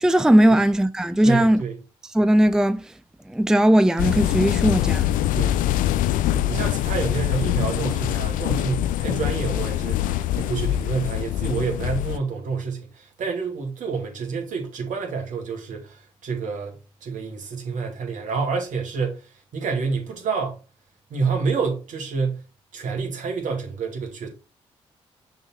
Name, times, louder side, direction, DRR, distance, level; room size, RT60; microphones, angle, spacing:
voice 1, 0.0-1.6 2.1-2.8 3.3-5.1, right 1 dB, 5° right, 0.5 m, -18 dB
voice 2, 1.2-1.8 5.3-5.6 6.3-20.6 21.1-22.4 22.7-24.3, right 5 dB, 65° right, 2.2 m, -28 dB
sound 1, 4.0-12.2, left 13 dB, 70° left, 0.4 m, -24 dB
6.4 x 3.7 x 4.5 m
hypercardioid pair, 45°, 14 cm